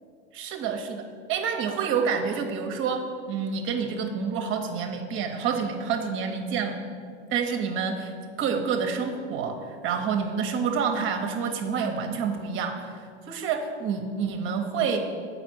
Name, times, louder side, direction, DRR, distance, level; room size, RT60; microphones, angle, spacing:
voice 1, 0.3-1.0 1.3-6.8 7.3-8.1 8.4-15.1, right 6 dB, 35° right, 5 dB, 0.7 m, -28 dB
7.1 x 5.1 x 6.1 m, 2.2 s
hypercardioid pair, 115°, 34 cm